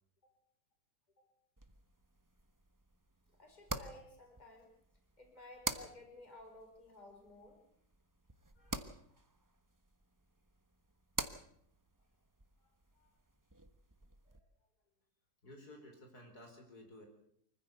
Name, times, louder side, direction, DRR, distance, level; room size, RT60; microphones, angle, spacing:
sound 1, 1.6-14.4, right 2 dB, 15° right, 1.0 m, -47 dB
voice 1, 3.4-4.7 5.2-7.6, left 2 dB, 25° left, 2 dB, 4.4 m, -55 dB
voice 2, 8.6-8.9 12.6-12.7 12.9-13.2 14.2-14.5 15.4-17.1, left 1 dB, 65° left, 2 dB, 5.1 m, -56 dB
25.0 x 15.0 x 8.1 m, 0.69 s
omnidirectional pair, 1.8 m